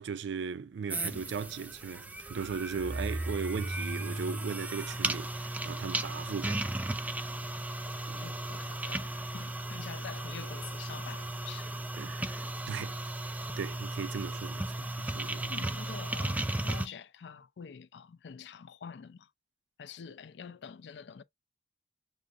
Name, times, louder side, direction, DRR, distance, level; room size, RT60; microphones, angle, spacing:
voice 1, 0.0-6.7 8.1-8.3 12.0-15.5, right 6 dB, 85° right, 0.4 m, -38 dB
sound 1, 0.9-16.9, right 2 dB, 10° right, 0.3 m, -35 dB
voice 2, 7.4-11.8 13.5-13.6 15.4-19.3 19.8-21.2, left 6 dB, 75° left, 0.4 m, -47 dB
6.3 x 2.5 x 2.4 m
head